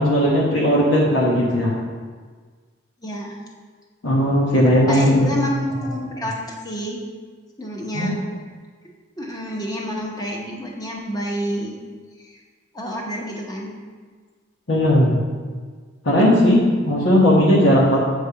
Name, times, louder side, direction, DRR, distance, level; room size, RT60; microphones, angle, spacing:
voice 1, 0.0-1.7 4.0-5.4 7.9-8.1 14.7-15.2 16.0-18.0, equal, 85° left, -5 dB, 1.2 m, -17 dB
voice 2, 3.0-3.4 4.9-7.0 7.6-8.2 9.2-11.7 12.7-13.7, equal, 20° left, -2 dB, 1.0 m, -28 dB
8.3 x 3.4 x 5.6 m, 1.5 s
head